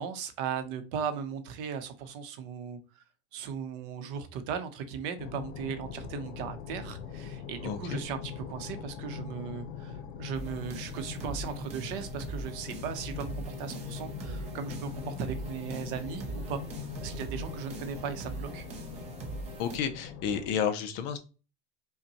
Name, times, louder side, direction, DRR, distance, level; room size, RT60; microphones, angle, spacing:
voice 1, 0.0-3.0 3.3-16.6 17.0-18.7, right 7 dB, 55° right, 0.7 m, -37 dB
sound 1, 5.2-20.5, left 7 dB, 85° left, 0.8 m, -42 dB
voice 2, 7.6-8.0 19.6-21.2, left 7 dB, 40° left, 0.4 m, -31 dB
sound 2, 10.3-19.8, right 3 dB, 20° right, 0.5 m, -42 dB
5.3 x 2.2 x 2.8 m
supercardioid pair, 160°, 32 cm